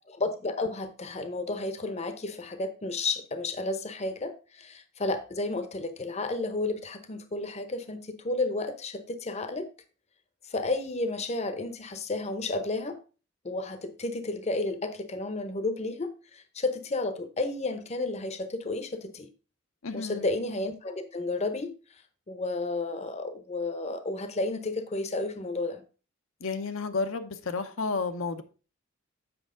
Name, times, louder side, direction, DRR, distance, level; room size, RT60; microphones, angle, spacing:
voice 1, 0.1-9.7 10.5-13.0 13.4-19.3 19.9-21.7 22.3-25.8, left 2 dB, 30° left, 0.7 m, -32 dB
voice 2, 19.8-20.2 26.4-28.4, left 4 dB, 75° left, 0.7 m, -31 dB
7.8 x 5.9 x 3.7 m
head